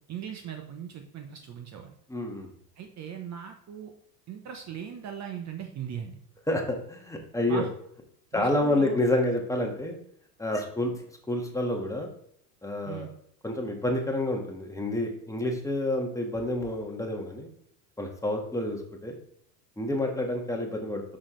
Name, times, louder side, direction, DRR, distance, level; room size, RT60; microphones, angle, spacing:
voice 1, 0.1-2.0 2.8-3.9 4.3-6.2 7.5-7.7 8.3-9.0 12.9-13.1, right 8 dB, 35° right, 5 dB, 0.9 m, -39 dB
voice 2, 2.1-2.5 6.5-7.7 8.3-10.0 10.4-12.1 12.6-13.1 13.4-17.5 18.0-19.2 19.8-21.0, left 1 dB, 5° left, 1 dB, 1.5 m, -29 dB
6.3 x 6.2 x 3.1 m, 0.68 s
hypercardioid pair, 90°, 48 cm